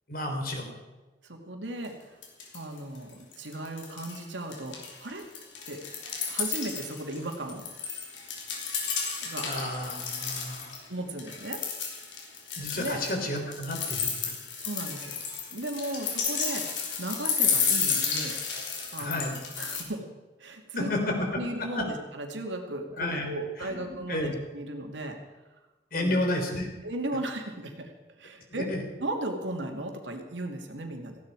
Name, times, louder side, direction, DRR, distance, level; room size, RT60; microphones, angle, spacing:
voice 1, 0.1-0.7 9.4-10.8 12.6-14.1 19.0-19.3 20.7-21.4 21.7-21.8 23.0-23.3 23.6-24.4 25.9-26.7 28.5-28.8, left 1 dB, 50° left, 2 dB, 3.8 m, -31 dB
voice 2, 1.2-2.2 2.5-5.2 5.7-5.8 6.3-7.6 9.2-9.5 10.9-11.6 12.7-13.0 14.6-15.2 15.5-18.4 18.9-20.1 20.4-20.9 21.3-25.2 25.9-26.2 26.8-27.9 28.2-28.7 29.0-31.2, right 1 dB, 85° right, 3 dB, 2.6 m, -36 dB
sound 1, 1.8-1.9 2.2-2.8 3.1-4.2 4.5-10.8 11.2-19.8, left 6 dB, 80° left, 3.8 m, -32 dB
18.0 x 15.5 x 4.9 m, 1.2 s
head